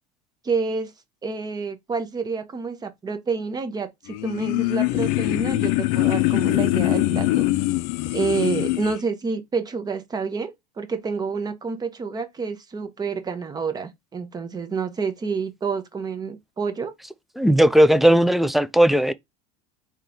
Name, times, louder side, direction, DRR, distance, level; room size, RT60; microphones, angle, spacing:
voice 1, 0.4-0.9 1.2-7.5 8.1-10.5 10.8-16.9, right 5 dB, 20° right, 0.8 m, -28 dB
sound 1, 4.1-9.0, left 18 dB, 65° left, 0.5 m, -23 dB
voice 2, 17.4-19.1, right 1 dB, ahead, 0.3 m, -17 dB
3.7 x 2.9 x 3.4 m
supercardioid pair, 110°, 18 cm